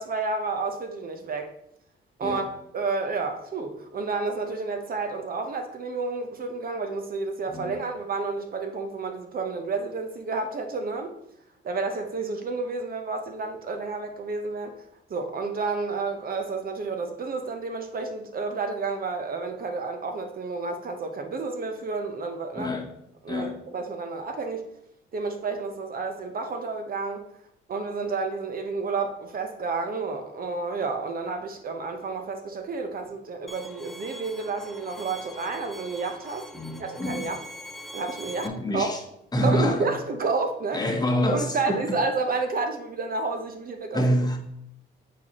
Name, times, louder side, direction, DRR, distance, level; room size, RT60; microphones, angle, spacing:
voice 1, 0.0-1.5 2.2-11.1 11.6-14.7 15.1-22.7 23.2-24.7 25.1-27.2 27.7-36.5 36.8-37.4 37.9-38.9 39.4-40.8 41.3-44.0, right 4 dB, 45° right, 0.8 m, -30 dB
voice 2, 7.5-7.8 22.5-22.9 23.3-23.6 36.5-37.3 38.4-39.0 39.3-39.9 40.7-42.0 43.9-44.4, equal, 20° left, 1.0 m, -27 dB
Bowed string instrument, 33.5-38.5, equal, ahead, 0.5 m, -43 dB
8.5 x 4.3 x 3.0 m
cardioid pair, 90°, 20 cm